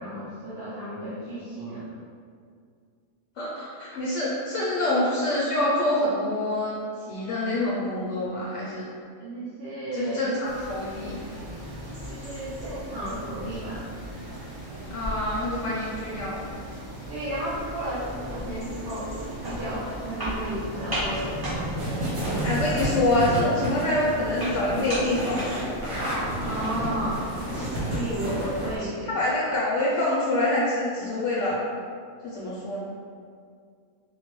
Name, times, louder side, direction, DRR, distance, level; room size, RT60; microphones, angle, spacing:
voice 1, 0.0-1.9 9.2-10.3 12.1-13.8 17.1-19.1 19.4-21.5 26.4-27.2 27.9-29.1, right 1 dB, 55° right, -9 dB, 0.7 m, -33 dB
voice 2, 3.4-6.7 7.1-8.8 9.9-11.2 14.9-16.5 22.4-25.8 28.6-31.6 32.2-32.8, left 1 dB, 65° left, -6 dB, 0.8 m, -26 dB
sound 1, 10.4-28.8, right 1 dB, 20° right, 0.8 m, -35 dB
sound 2, 21.8-28.7, right 1 dB, 80° right, 1.5 m, -32 dB
4.5 x 2.1 x 3.0 m, 2.2 s
omnidirectional pair, 1.5 m